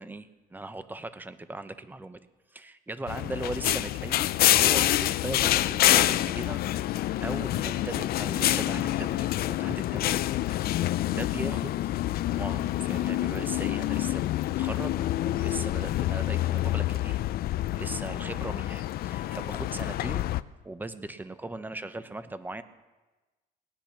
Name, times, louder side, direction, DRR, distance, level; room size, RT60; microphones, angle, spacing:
voice 1, 0.0-2.2 2.5-6.6 6.9-10.2 10.9-11.8 12.3-14.9 15.2-20.3 20.6-22.6, right 2 dB, 10° right, 11 dB, 0.9 m, -39 dB
sound 1, 3.1-20.4, left 14 dB, 65° left, 0.5 m, -27 dB
18.5 x 10.0 x 6.0 m, 1.2 s
cardioid pair, 110°, 17 cm